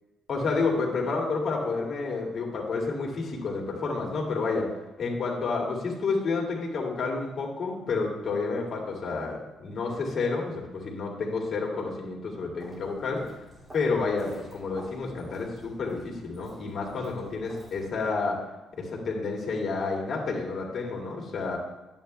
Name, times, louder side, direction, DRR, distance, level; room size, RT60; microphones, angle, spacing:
voice 1, 0.3-4.7 5.0-13.2 13.7-18.4 18.8-21.6, left 4 dB, 55° left, -2 dB, 2.3 m, -30 dB
Walk footsteps, 12.6-18.1, equal, 20° right, 2.8 m, -49 dB
11.0 x 8.9 x 2.2 m, 1.1 s
cardioid pair, 90°, 0 cm